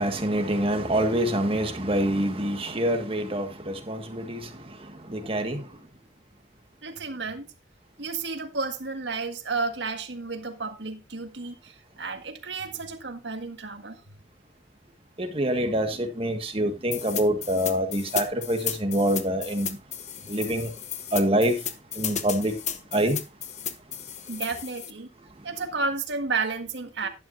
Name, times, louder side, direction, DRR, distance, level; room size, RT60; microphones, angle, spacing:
voice 1, 0.0-4.5 5.1-5.6 15.2-19.7 20.3-20.7 21.1-21.6 22.0-22.5 22.9-23.2, right 1 dB, 30° right, 1.8 m, -25 dB
voice 2, 6.8-7.5 8.0-14.0 24.3-25.1 25.4-27.1, right 4 dB, 75° right, 1.7 m, -32 dB
sound 1, 16.9-24.9, left 9 dB, 40° left, 1.0 m, -34 dB
12.0 x 11.0 x 2.6 m
head